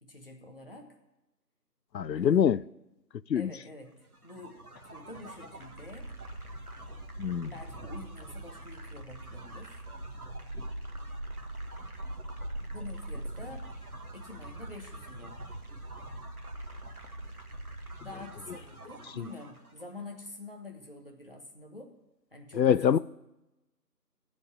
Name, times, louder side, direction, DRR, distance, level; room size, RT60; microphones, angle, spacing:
voice 1, 0.0-0.9 2.1-2.6 3.3-4.0 4.2-4.6 4.9-6.1 7.4-9.8 12.7-13.7 14.1-15.4 18.0-21.9 22.3-22.9, left 2 dB, 35° left, 1.2 m, -47 dB
voice 2, 1.9-2.6 3.3-3.5 7.2-7.5 19.2-19.3 22.6-23.0, left 8 dB, 90° left, 0.6 m, -24 dB
sound 1, 4.1-19.8, right 1 dB, 60° right, 1.8 m, -42 dB
15.0 x 5.4 x 8.7 m
figure-of-eight pair, 175°, 49 cm